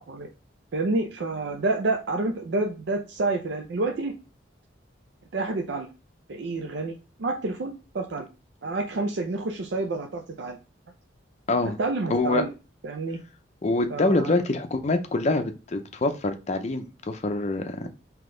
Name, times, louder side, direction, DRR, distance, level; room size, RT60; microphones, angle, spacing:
voice 1, 0.7-4.1 5.3-5.9 6.3-8.2 8.6-10.6 11.8-12.5 12.8-13.2 13.9-14.4 17.8-17.9, right 2 dB, 70° right, 2 dB, 0.5 m, -28 dB
voice 2, 12.1-12.4 13.6-17.9, left 2 dB, 40° left, 7 dB, 0.5 m, -25 dB
3.8 x 2.9 x 3.8 m, 0.31 s
head